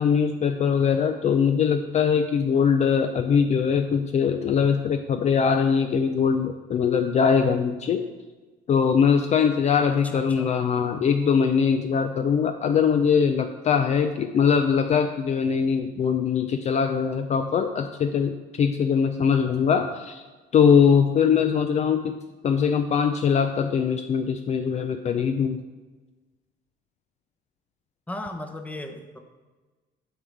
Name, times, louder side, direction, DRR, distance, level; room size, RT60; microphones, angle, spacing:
voice 1, 0.0-8.0 8.7-20.2 20.5-22.2 22.4-25.6, left 6 dB, 40° left, 7 dB, 0.4 m, -22 dB
voice 2, 9.9-10.5 28.1-29.2, left 1 dB, 10° left, 5 dB, 0.8 m, -36 dB
7.8 x 3.9 x 6.2 m, 1.2 s
cardioid pair, 110°, 17 cm